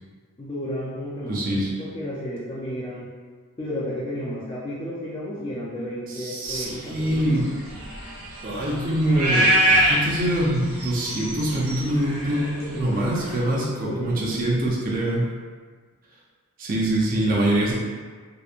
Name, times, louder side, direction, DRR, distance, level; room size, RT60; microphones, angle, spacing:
voice 1, 0.4-3.1 3.6-7.4 12.3-13.3 13.5-14.4, equal, 20° left, -9 dB, 0.3 m, -33 dB
voice 2, 1.3-1.7 6.1-7.5 8.4-15.3 16.6-17.7, right 1 dB, 40° right, -4 dB, 0.5 m, -24 dB
sound 1, 6.6-13.4, right 1 dB, 80° right, 0.7 m, -25 dB
2.9 x 2.1 x 2.4 m, 1.5 s
head